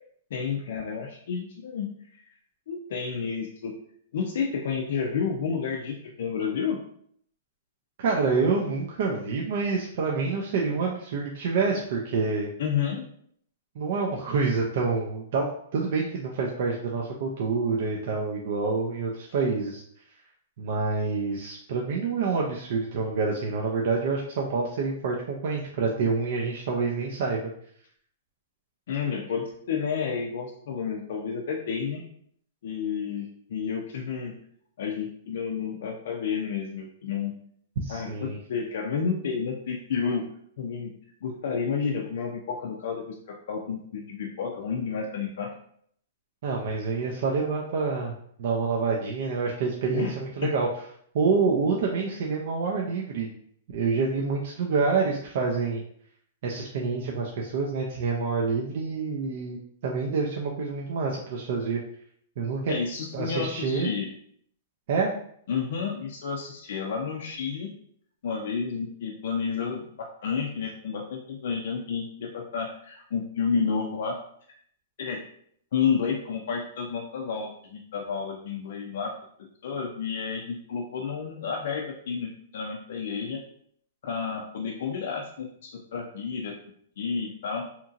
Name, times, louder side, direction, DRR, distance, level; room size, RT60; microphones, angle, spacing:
voice 1, 0.3-2.2 2.7-3.8 4.1-6.8 12.6-13.1 28.9-32.0 32.6-34.4 34.8-37.3 37.9-40.3 40.6-40.9 41.2-45.5 49.9-50.1 50.4-50.5 62.7-64.1 65.5-67.7 68.2-74.2 75.0-75.3 75.7-79.1 79.4-83.4 84.0-86.6 87.0-87.7, left 6 dB, 60° left, 0 dB, 0.4 m, -30 dB
voice 2, 8.0-12.5 13.8-19.8 20.6-27.5 37.8-38.4 46.4-48.1 48.4-50.7 51.1-53.3 53.7-55.8 56.4-61.8 62.4-62.7 63.1-63.9 64.9-65.1, right 4 dB, 50° right, -1 dB, 0.4 m, -27 dB
2.8 x 2.6 x 2.4 m, 0.64 s
hypercardioid pair, 170°, 0 cm